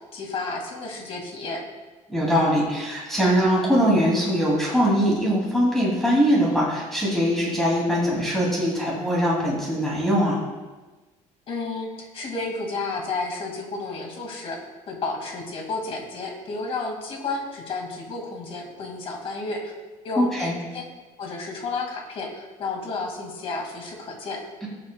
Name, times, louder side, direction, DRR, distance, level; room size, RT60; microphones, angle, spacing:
voice 1, 0.0-1.6 11.5-14.6 14.9-19.7 20.0-20.8 21.2-24.4, left 3 dB, 45° left, 1 dB, 2.1 m, -32 dB
voice 2, 2.1-10.4 20.2-20.5, equal, ahead, -6 dB, 2.6 m, -22 dB
20.0 x 7.6 x 2.3 m, 1.2 s
cardioid pair, 160°, 13 cm